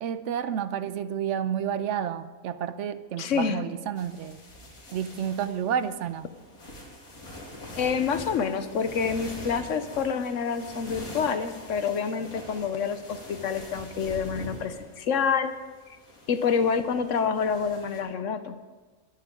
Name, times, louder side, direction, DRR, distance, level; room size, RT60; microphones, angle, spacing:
voice 1, 0.0-4.4 4.9-6.3, right 9 dB, 65° right, 13 dB, 0.9 m, -30 dB
voice 2, 3.2-3.6 7.8-15.5 16.3-18.6, left 6 dB, 65° left, 10 dB, 1.0 m, -27 dB
sound 1, 3.9-18.0, left 1 dB, 80° left, 3.1 m, -44 dB
22.0 x 9.0 x 3.7 m, 1.3 s
omnidirectional pair, 1.5 m